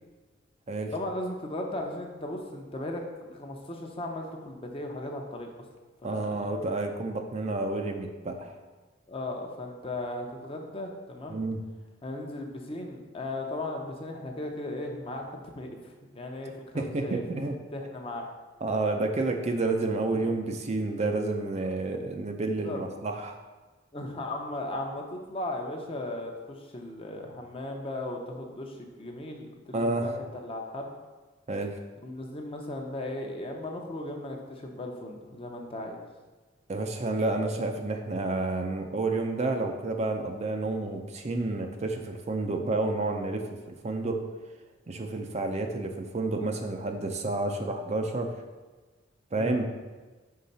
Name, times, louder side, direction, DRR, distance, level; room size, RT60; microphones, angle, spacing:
voice 1, 0.9-5.5 6.0-6.5 9.1-11.4 12.0-17.2 17.7-18.3 22.4-22.8 23.9-30.9 32.0-36.0 49.4-49.6, left 1 dB, 30° left, 2 dB, 0.7 m, -37 dB
voice 2, 6.0-8.6 11.3-11.6 16.7-17.6 18.6-23.4 29.7-30.1 31.5-31.8 36.7-44.2 44.9-48.3 49.3-49.7, right 2 dB, 35° right, 4 dB, 0.5 m, -30 dB
5.6 x 3.7 x 5.4 m, 1.3 s
head